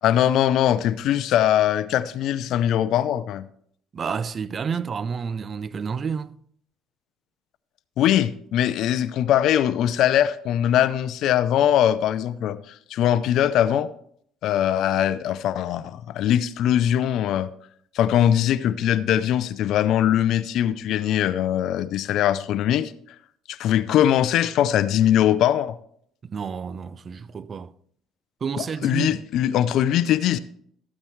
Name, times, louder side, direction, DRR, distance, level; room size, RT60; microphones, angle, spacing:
voice 1, 0.0-3.4 8.0-13.9 14.4-17.5 17.9-22.9 23.5-25.8 28.6-30.4, left 11 dB, 65° left, 0.6 m, -21 dB
voice 2, 3.9-6.3 26.2-27.7 28.4-29.2, right 6 dB, 40° right, 0.5 m, -30 dB
13.5 x 8.8 x 3.2 m
supercardioid pair, 85°, 0 cm